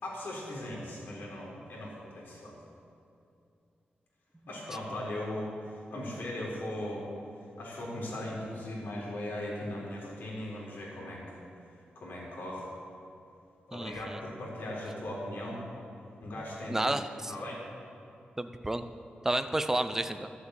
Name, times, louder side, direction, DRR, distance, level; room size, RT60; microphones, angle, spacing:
voice 1, 0.0-2.5 4.5-7.1 7.6-11.4 12.0-12.7 13.7-15.6 16.2-16.9 17.3-17.7, left 1 dB, 75° left, -4 dB, 4.2 m, -38 dB
voice 2, 13.7-14.2 16.7-17.3 18.4-18.8 19.2-20.3, right 1 dB, 10° right, 10 dB, 0.6 m, -31 dB
13.5 x 8.1 x 8.3 m, 2.5 s
wide cardioid pair, 120°, 4 cm